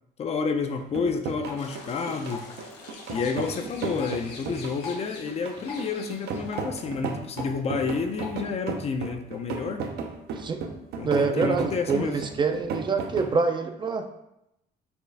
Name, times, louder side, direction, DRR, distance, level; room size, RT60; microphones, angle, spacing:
voice 1, 0.2-2.5 3.1-9.8 11.0-12.2, left 5 dB, 40° left, 6 dB, 0.4 m, -30 dB
sound 1, 0.7-13.4, right 5 dB, 75° right, 0.5 m, -34 dB
Drip, 1.4-8.4, left 6 dB, 65° left, 1.2 m, -45 dB
sound 2, 1.6-6.7, left 3 dB, 85° left, 0.7 m, -46 dB
voice 2, 11.0-14.1, right 4 dB, 30° right, 6 dB, 0.3 m, -26 dB
4.3 x 2.4 x 3.3 m, 0.82 s
cardioid pair, 110°, 17 cm